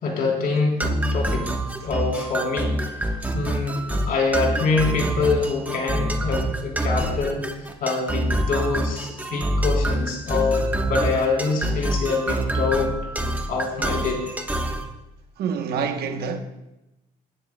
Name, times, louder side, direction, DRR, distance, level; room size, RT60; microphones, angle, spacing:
voice 1, 0.0-1.5 1.8-2.8 3.1-7.4 7.8-12.9 13.5-14.2, left 4 dB, 60° left, 3.7 m, -25 dB
sound 1, 0.8-14.9, right 1 dB, 10° right, 1.2 m, -26 dB
voice 2, 15.4-16.4, right 6 dB, 70° right, 1.1 m, -26 dB
17.5 x 10.5 x 2.3 m
cardioid pair, 110°, 17 cm